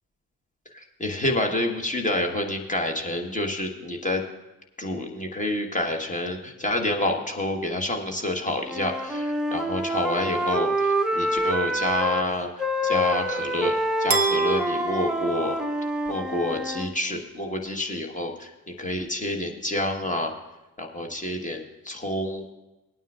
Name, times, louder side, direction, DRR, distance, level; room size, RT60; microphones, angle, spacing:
voice 1, 0.7-4.2 4.8-13.7 14.0-15.6 16.1-20.3 20.8-22.4, left 1 dB, 15° left, 3 dB, 1.4 m, -28 dB
Wind instrument woodwind instrument, 8.7-12.3 12.6-16.9, right 1 dB, ahead, 0.9 m, -26 dB
sound 1, 14.1-16.2, right 3 dB, 20° right, 1.2 m, -29 dB
19.0 x 9.1 x 2.5 m, 1.0 s
figure-of-eight pair, 50°, 48 cm